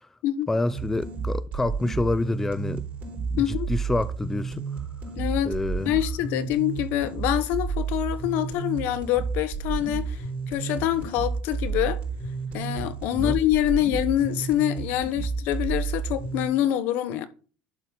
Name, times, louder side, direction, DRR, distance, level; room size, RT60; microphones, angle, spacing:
voice 1, 0.5-2.8 3.3-4.6 5.5-5.9 13.1-13.4, left 2 dB, 10° left, 0.4 m, -27 dB
sound 1, 0.7-16.5, right 5 dB, 45° right, 3.9 m, -31 dB
voice 2, 3.4-3.7 5.2-5.6 5.8-12.0 12.5-17.3, left 12 dB, 70° left, 1.0 m, -25 dB
11.5 x 4.0 x 5.8 m
cardioid pair, 125°, 4 cm